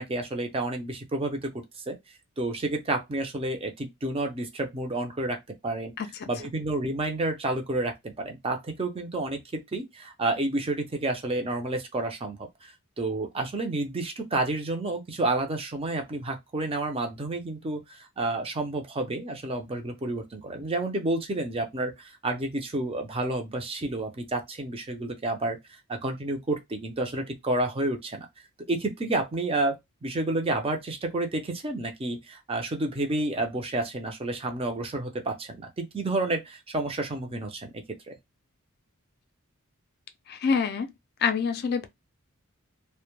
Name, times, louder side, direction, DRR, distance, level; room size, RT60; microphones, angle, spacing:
voice 1, 0.0-1.5 1.9-2.0 2.4-5.4 5.6-5.9 6.3-25.6 25.9-28.3 28.7-29.8 30.0-37.7 38.1-38.2, right 2 dB, 25° right, 0.5 m, -30 dB
voice 2, 6.0-6.3 40.3-40.9 41.2-41.9, left 5 dB, 45° left, 0.4 m, -26 dB
2.1 x 2.0 x 2.9 m
head